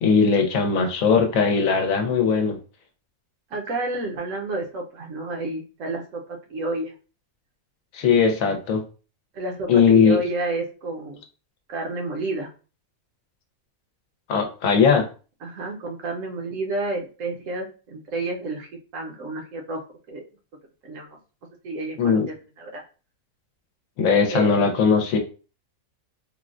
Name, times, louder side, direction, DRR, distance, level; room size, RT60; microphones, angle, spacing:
voice 1, 0.0-2.6 7.9-8.8 9.7-10.2 14.3-15.1 22.0-22.3 24.0-25.2, left 5 dB, 80° left, 5 dB, 1.1 m, -19 dB
voice 2, 3.5-6.2 6.5-6.9 9.3-11.2 11.7-12.5 15.4-20.2 20.8-21.2 21.6-22.8 24.3-24.6, right 2 dB, 70° right, 2 dB, 1.1 m, -30 dB
3.7 x 2.1 x 2.4 m, 0.35 s
omnidirectional pair, 1.4 m